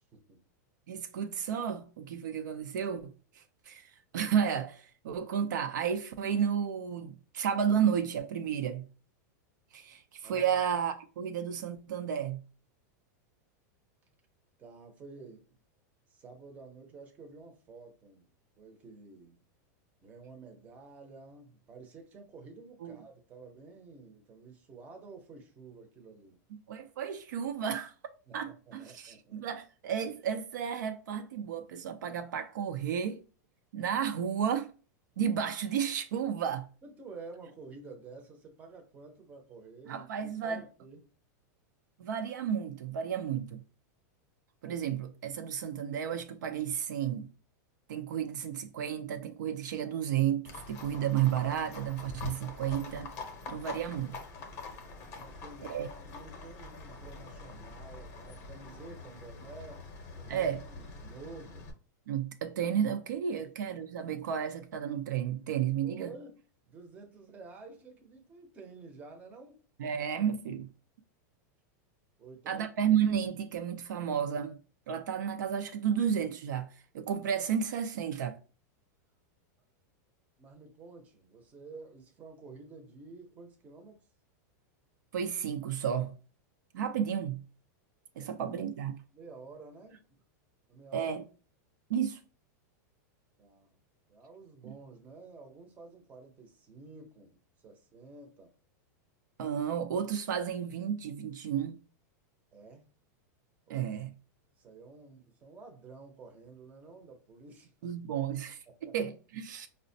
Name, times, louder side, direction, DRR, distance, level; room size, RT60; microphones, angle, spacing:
voice 1, 0.9-8.9 9.7-12.4 22.8-23.0 26.7-27.9 28.3-33.2 33.7-34.7 35.2-36.7 39.9-40.6 42.0-43.6 44.6-47.3 47.9-53.1 53.5-54.2 55.7-55.9 60.3-60.6 62.1-66.1 69.8-70.7 72.5-74.6 74.9-78.4 85.1-86.1 86.7-87.4 88.2-89.0 90.9-91.2 91.9-92.2 94.6-94.7 99.4-101.8 103.7-104.1 107.8-109.7, right 8 dB, 85° right, 0.5 m, -32 dB
voice 2, 10.2-10.5 14.6-15.4 16.1-18.3 18.6-19.4 20.0-26.4 28.3-29.5 36.8-41.0 55.1-59.8 60.1-61.7 65.8-66.4 66.7-69.6 72.2-72.7 80.4-84.0 88.2-88.3 89.1-90.0 90.7-91.1 93.4-93.8 94.1-98.5 102.5-102.9 103.7-103.9 104.6-107.7 108.7-108.9, right 3 dB, 15° right, 0.6 m, -51 dB
Livestock farm animals working animals, 50.4-61.7, left 3 dB, 25° left, 0.6 m, -45 dB
4.9 x 2.1 x 2.6 m
supercardioid pair, 170°, 10 cm